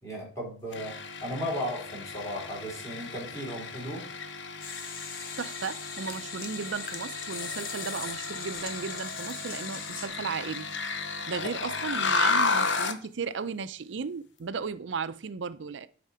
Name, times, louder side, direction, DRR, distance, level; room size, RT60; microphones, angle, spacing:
voice 1, 0.0-4.0 11.6-11.7, equal, 15° left, 3.2 m, -36 dB
sound 1, 0.7-13.0, left 4 dB, 80° left, 0.7 m, -33 dB
sound 2, 4.6-10.1, left 6 dB, 50° left, 1.0 m, -40 dB
voice 2, 5.4-15.9, right 5 dB, 85° right, 0.5 m, -35 dB
8.3 x 4.3 x 4.9 m
head